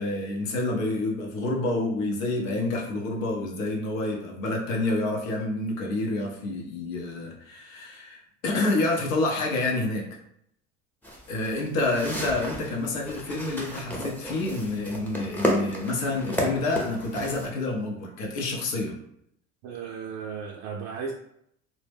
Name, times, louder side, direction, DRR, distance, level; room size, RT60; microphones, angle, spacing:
voice 1, 0.0-10.1 11.3-19.0, left 2 dB, 85° left, 0 dB, 0.7 m, -28 dB
sound 1, 11.0-17.5, equal, 5° left, 0.6 m, -32 dB
voice 2, 19.6-21.1, right 6 dB, 45° right, 0 dB, 0.4 m, -35 dB
2.1 x 2.0 x 3.3 m, 0.73 s
hypercardioid pair, 80°, 39 cm